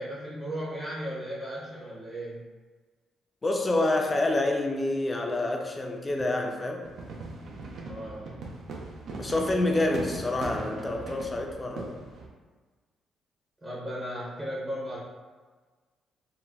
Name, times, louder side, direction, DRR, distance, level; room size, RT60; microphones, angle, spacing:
voice 1, 0.0-2.4 7.8-8.3 13.6-15.0, equal, 25° right, -7 dB, 0.8 m, -36 dB
voice 2, 3.4-6.9 9.2-11.9, left 2 dB, 25° left, 2 dB, 0.4 m, -27 dB
sound 1, 6.8-12.3, right 3 dB, 70° right, 0.5 m, -40 dB
3.8 x 2.1 x 2.3 m, 1.4 s
cardioid pair, 90°, 0 cm